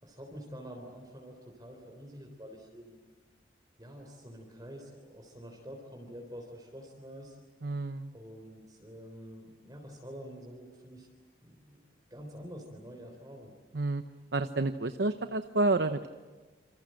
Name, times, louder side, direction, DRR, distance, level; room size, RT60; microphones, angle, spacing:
voice 1, 0.0-3.0 3.8-7.4 8.1-11.1 11.4-11.8 12.1-13.6, equal, 20° right, 1 dB, 3.7 m, -47 dB
voice 2, 7.6-8.1 13.7-14.0 14.3-16.1, right 2 dB, 70° right, 9 dB, 0.9 m, -29 dB
27.5 x 27.0 x 7.8 m, 1.3 s
head